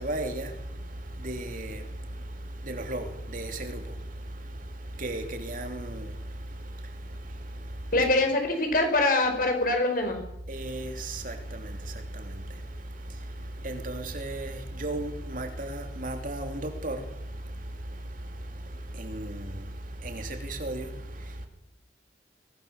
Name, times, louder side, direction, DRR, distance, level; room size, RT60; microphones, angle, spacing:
voice 1, 0.0-8.1 10.5-21.5, right 1 dB, 45° right, 3.0 m, -36 dB
voice 2, 7.9-10.2, left 2 dB, 50° left, 5.3 m, -24 dB
23.0 x 17.5 x 7.1 m
head